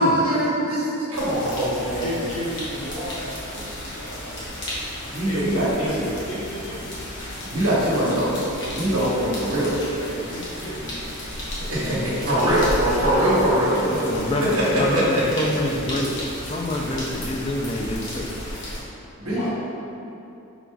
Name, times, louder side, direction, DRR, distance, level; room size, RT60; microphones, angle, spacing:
voice 1, 0.0-2.1 5.1-6.1 7.5-8.3 8.7-9.7 11.4-11.5 11.7-14.1 14.4-15.0 19.2-19.5, right 1 dB, 80° right, -7 dB, 1.2 m, -22 dB
sound 1, 1.1-18.8, left 1 dB, 55° left, 0.9 m, -34 dB
voice 2, 2.0-4.8 5.2-7.1 8.9-9.3 9.9-10.9 11.9-12.7 13.1-14.2 19.2-19.5, left 1 dB, 80° left, -10 dB, 1.4 m, -35 dB
voice 3, 14.1-16.2 16.5-18.3, left 1 dB, 25° left, 0 dB, 0.3 m, -26 dB
3.9 x 2.3 x 4.5 m, 2.8 s
head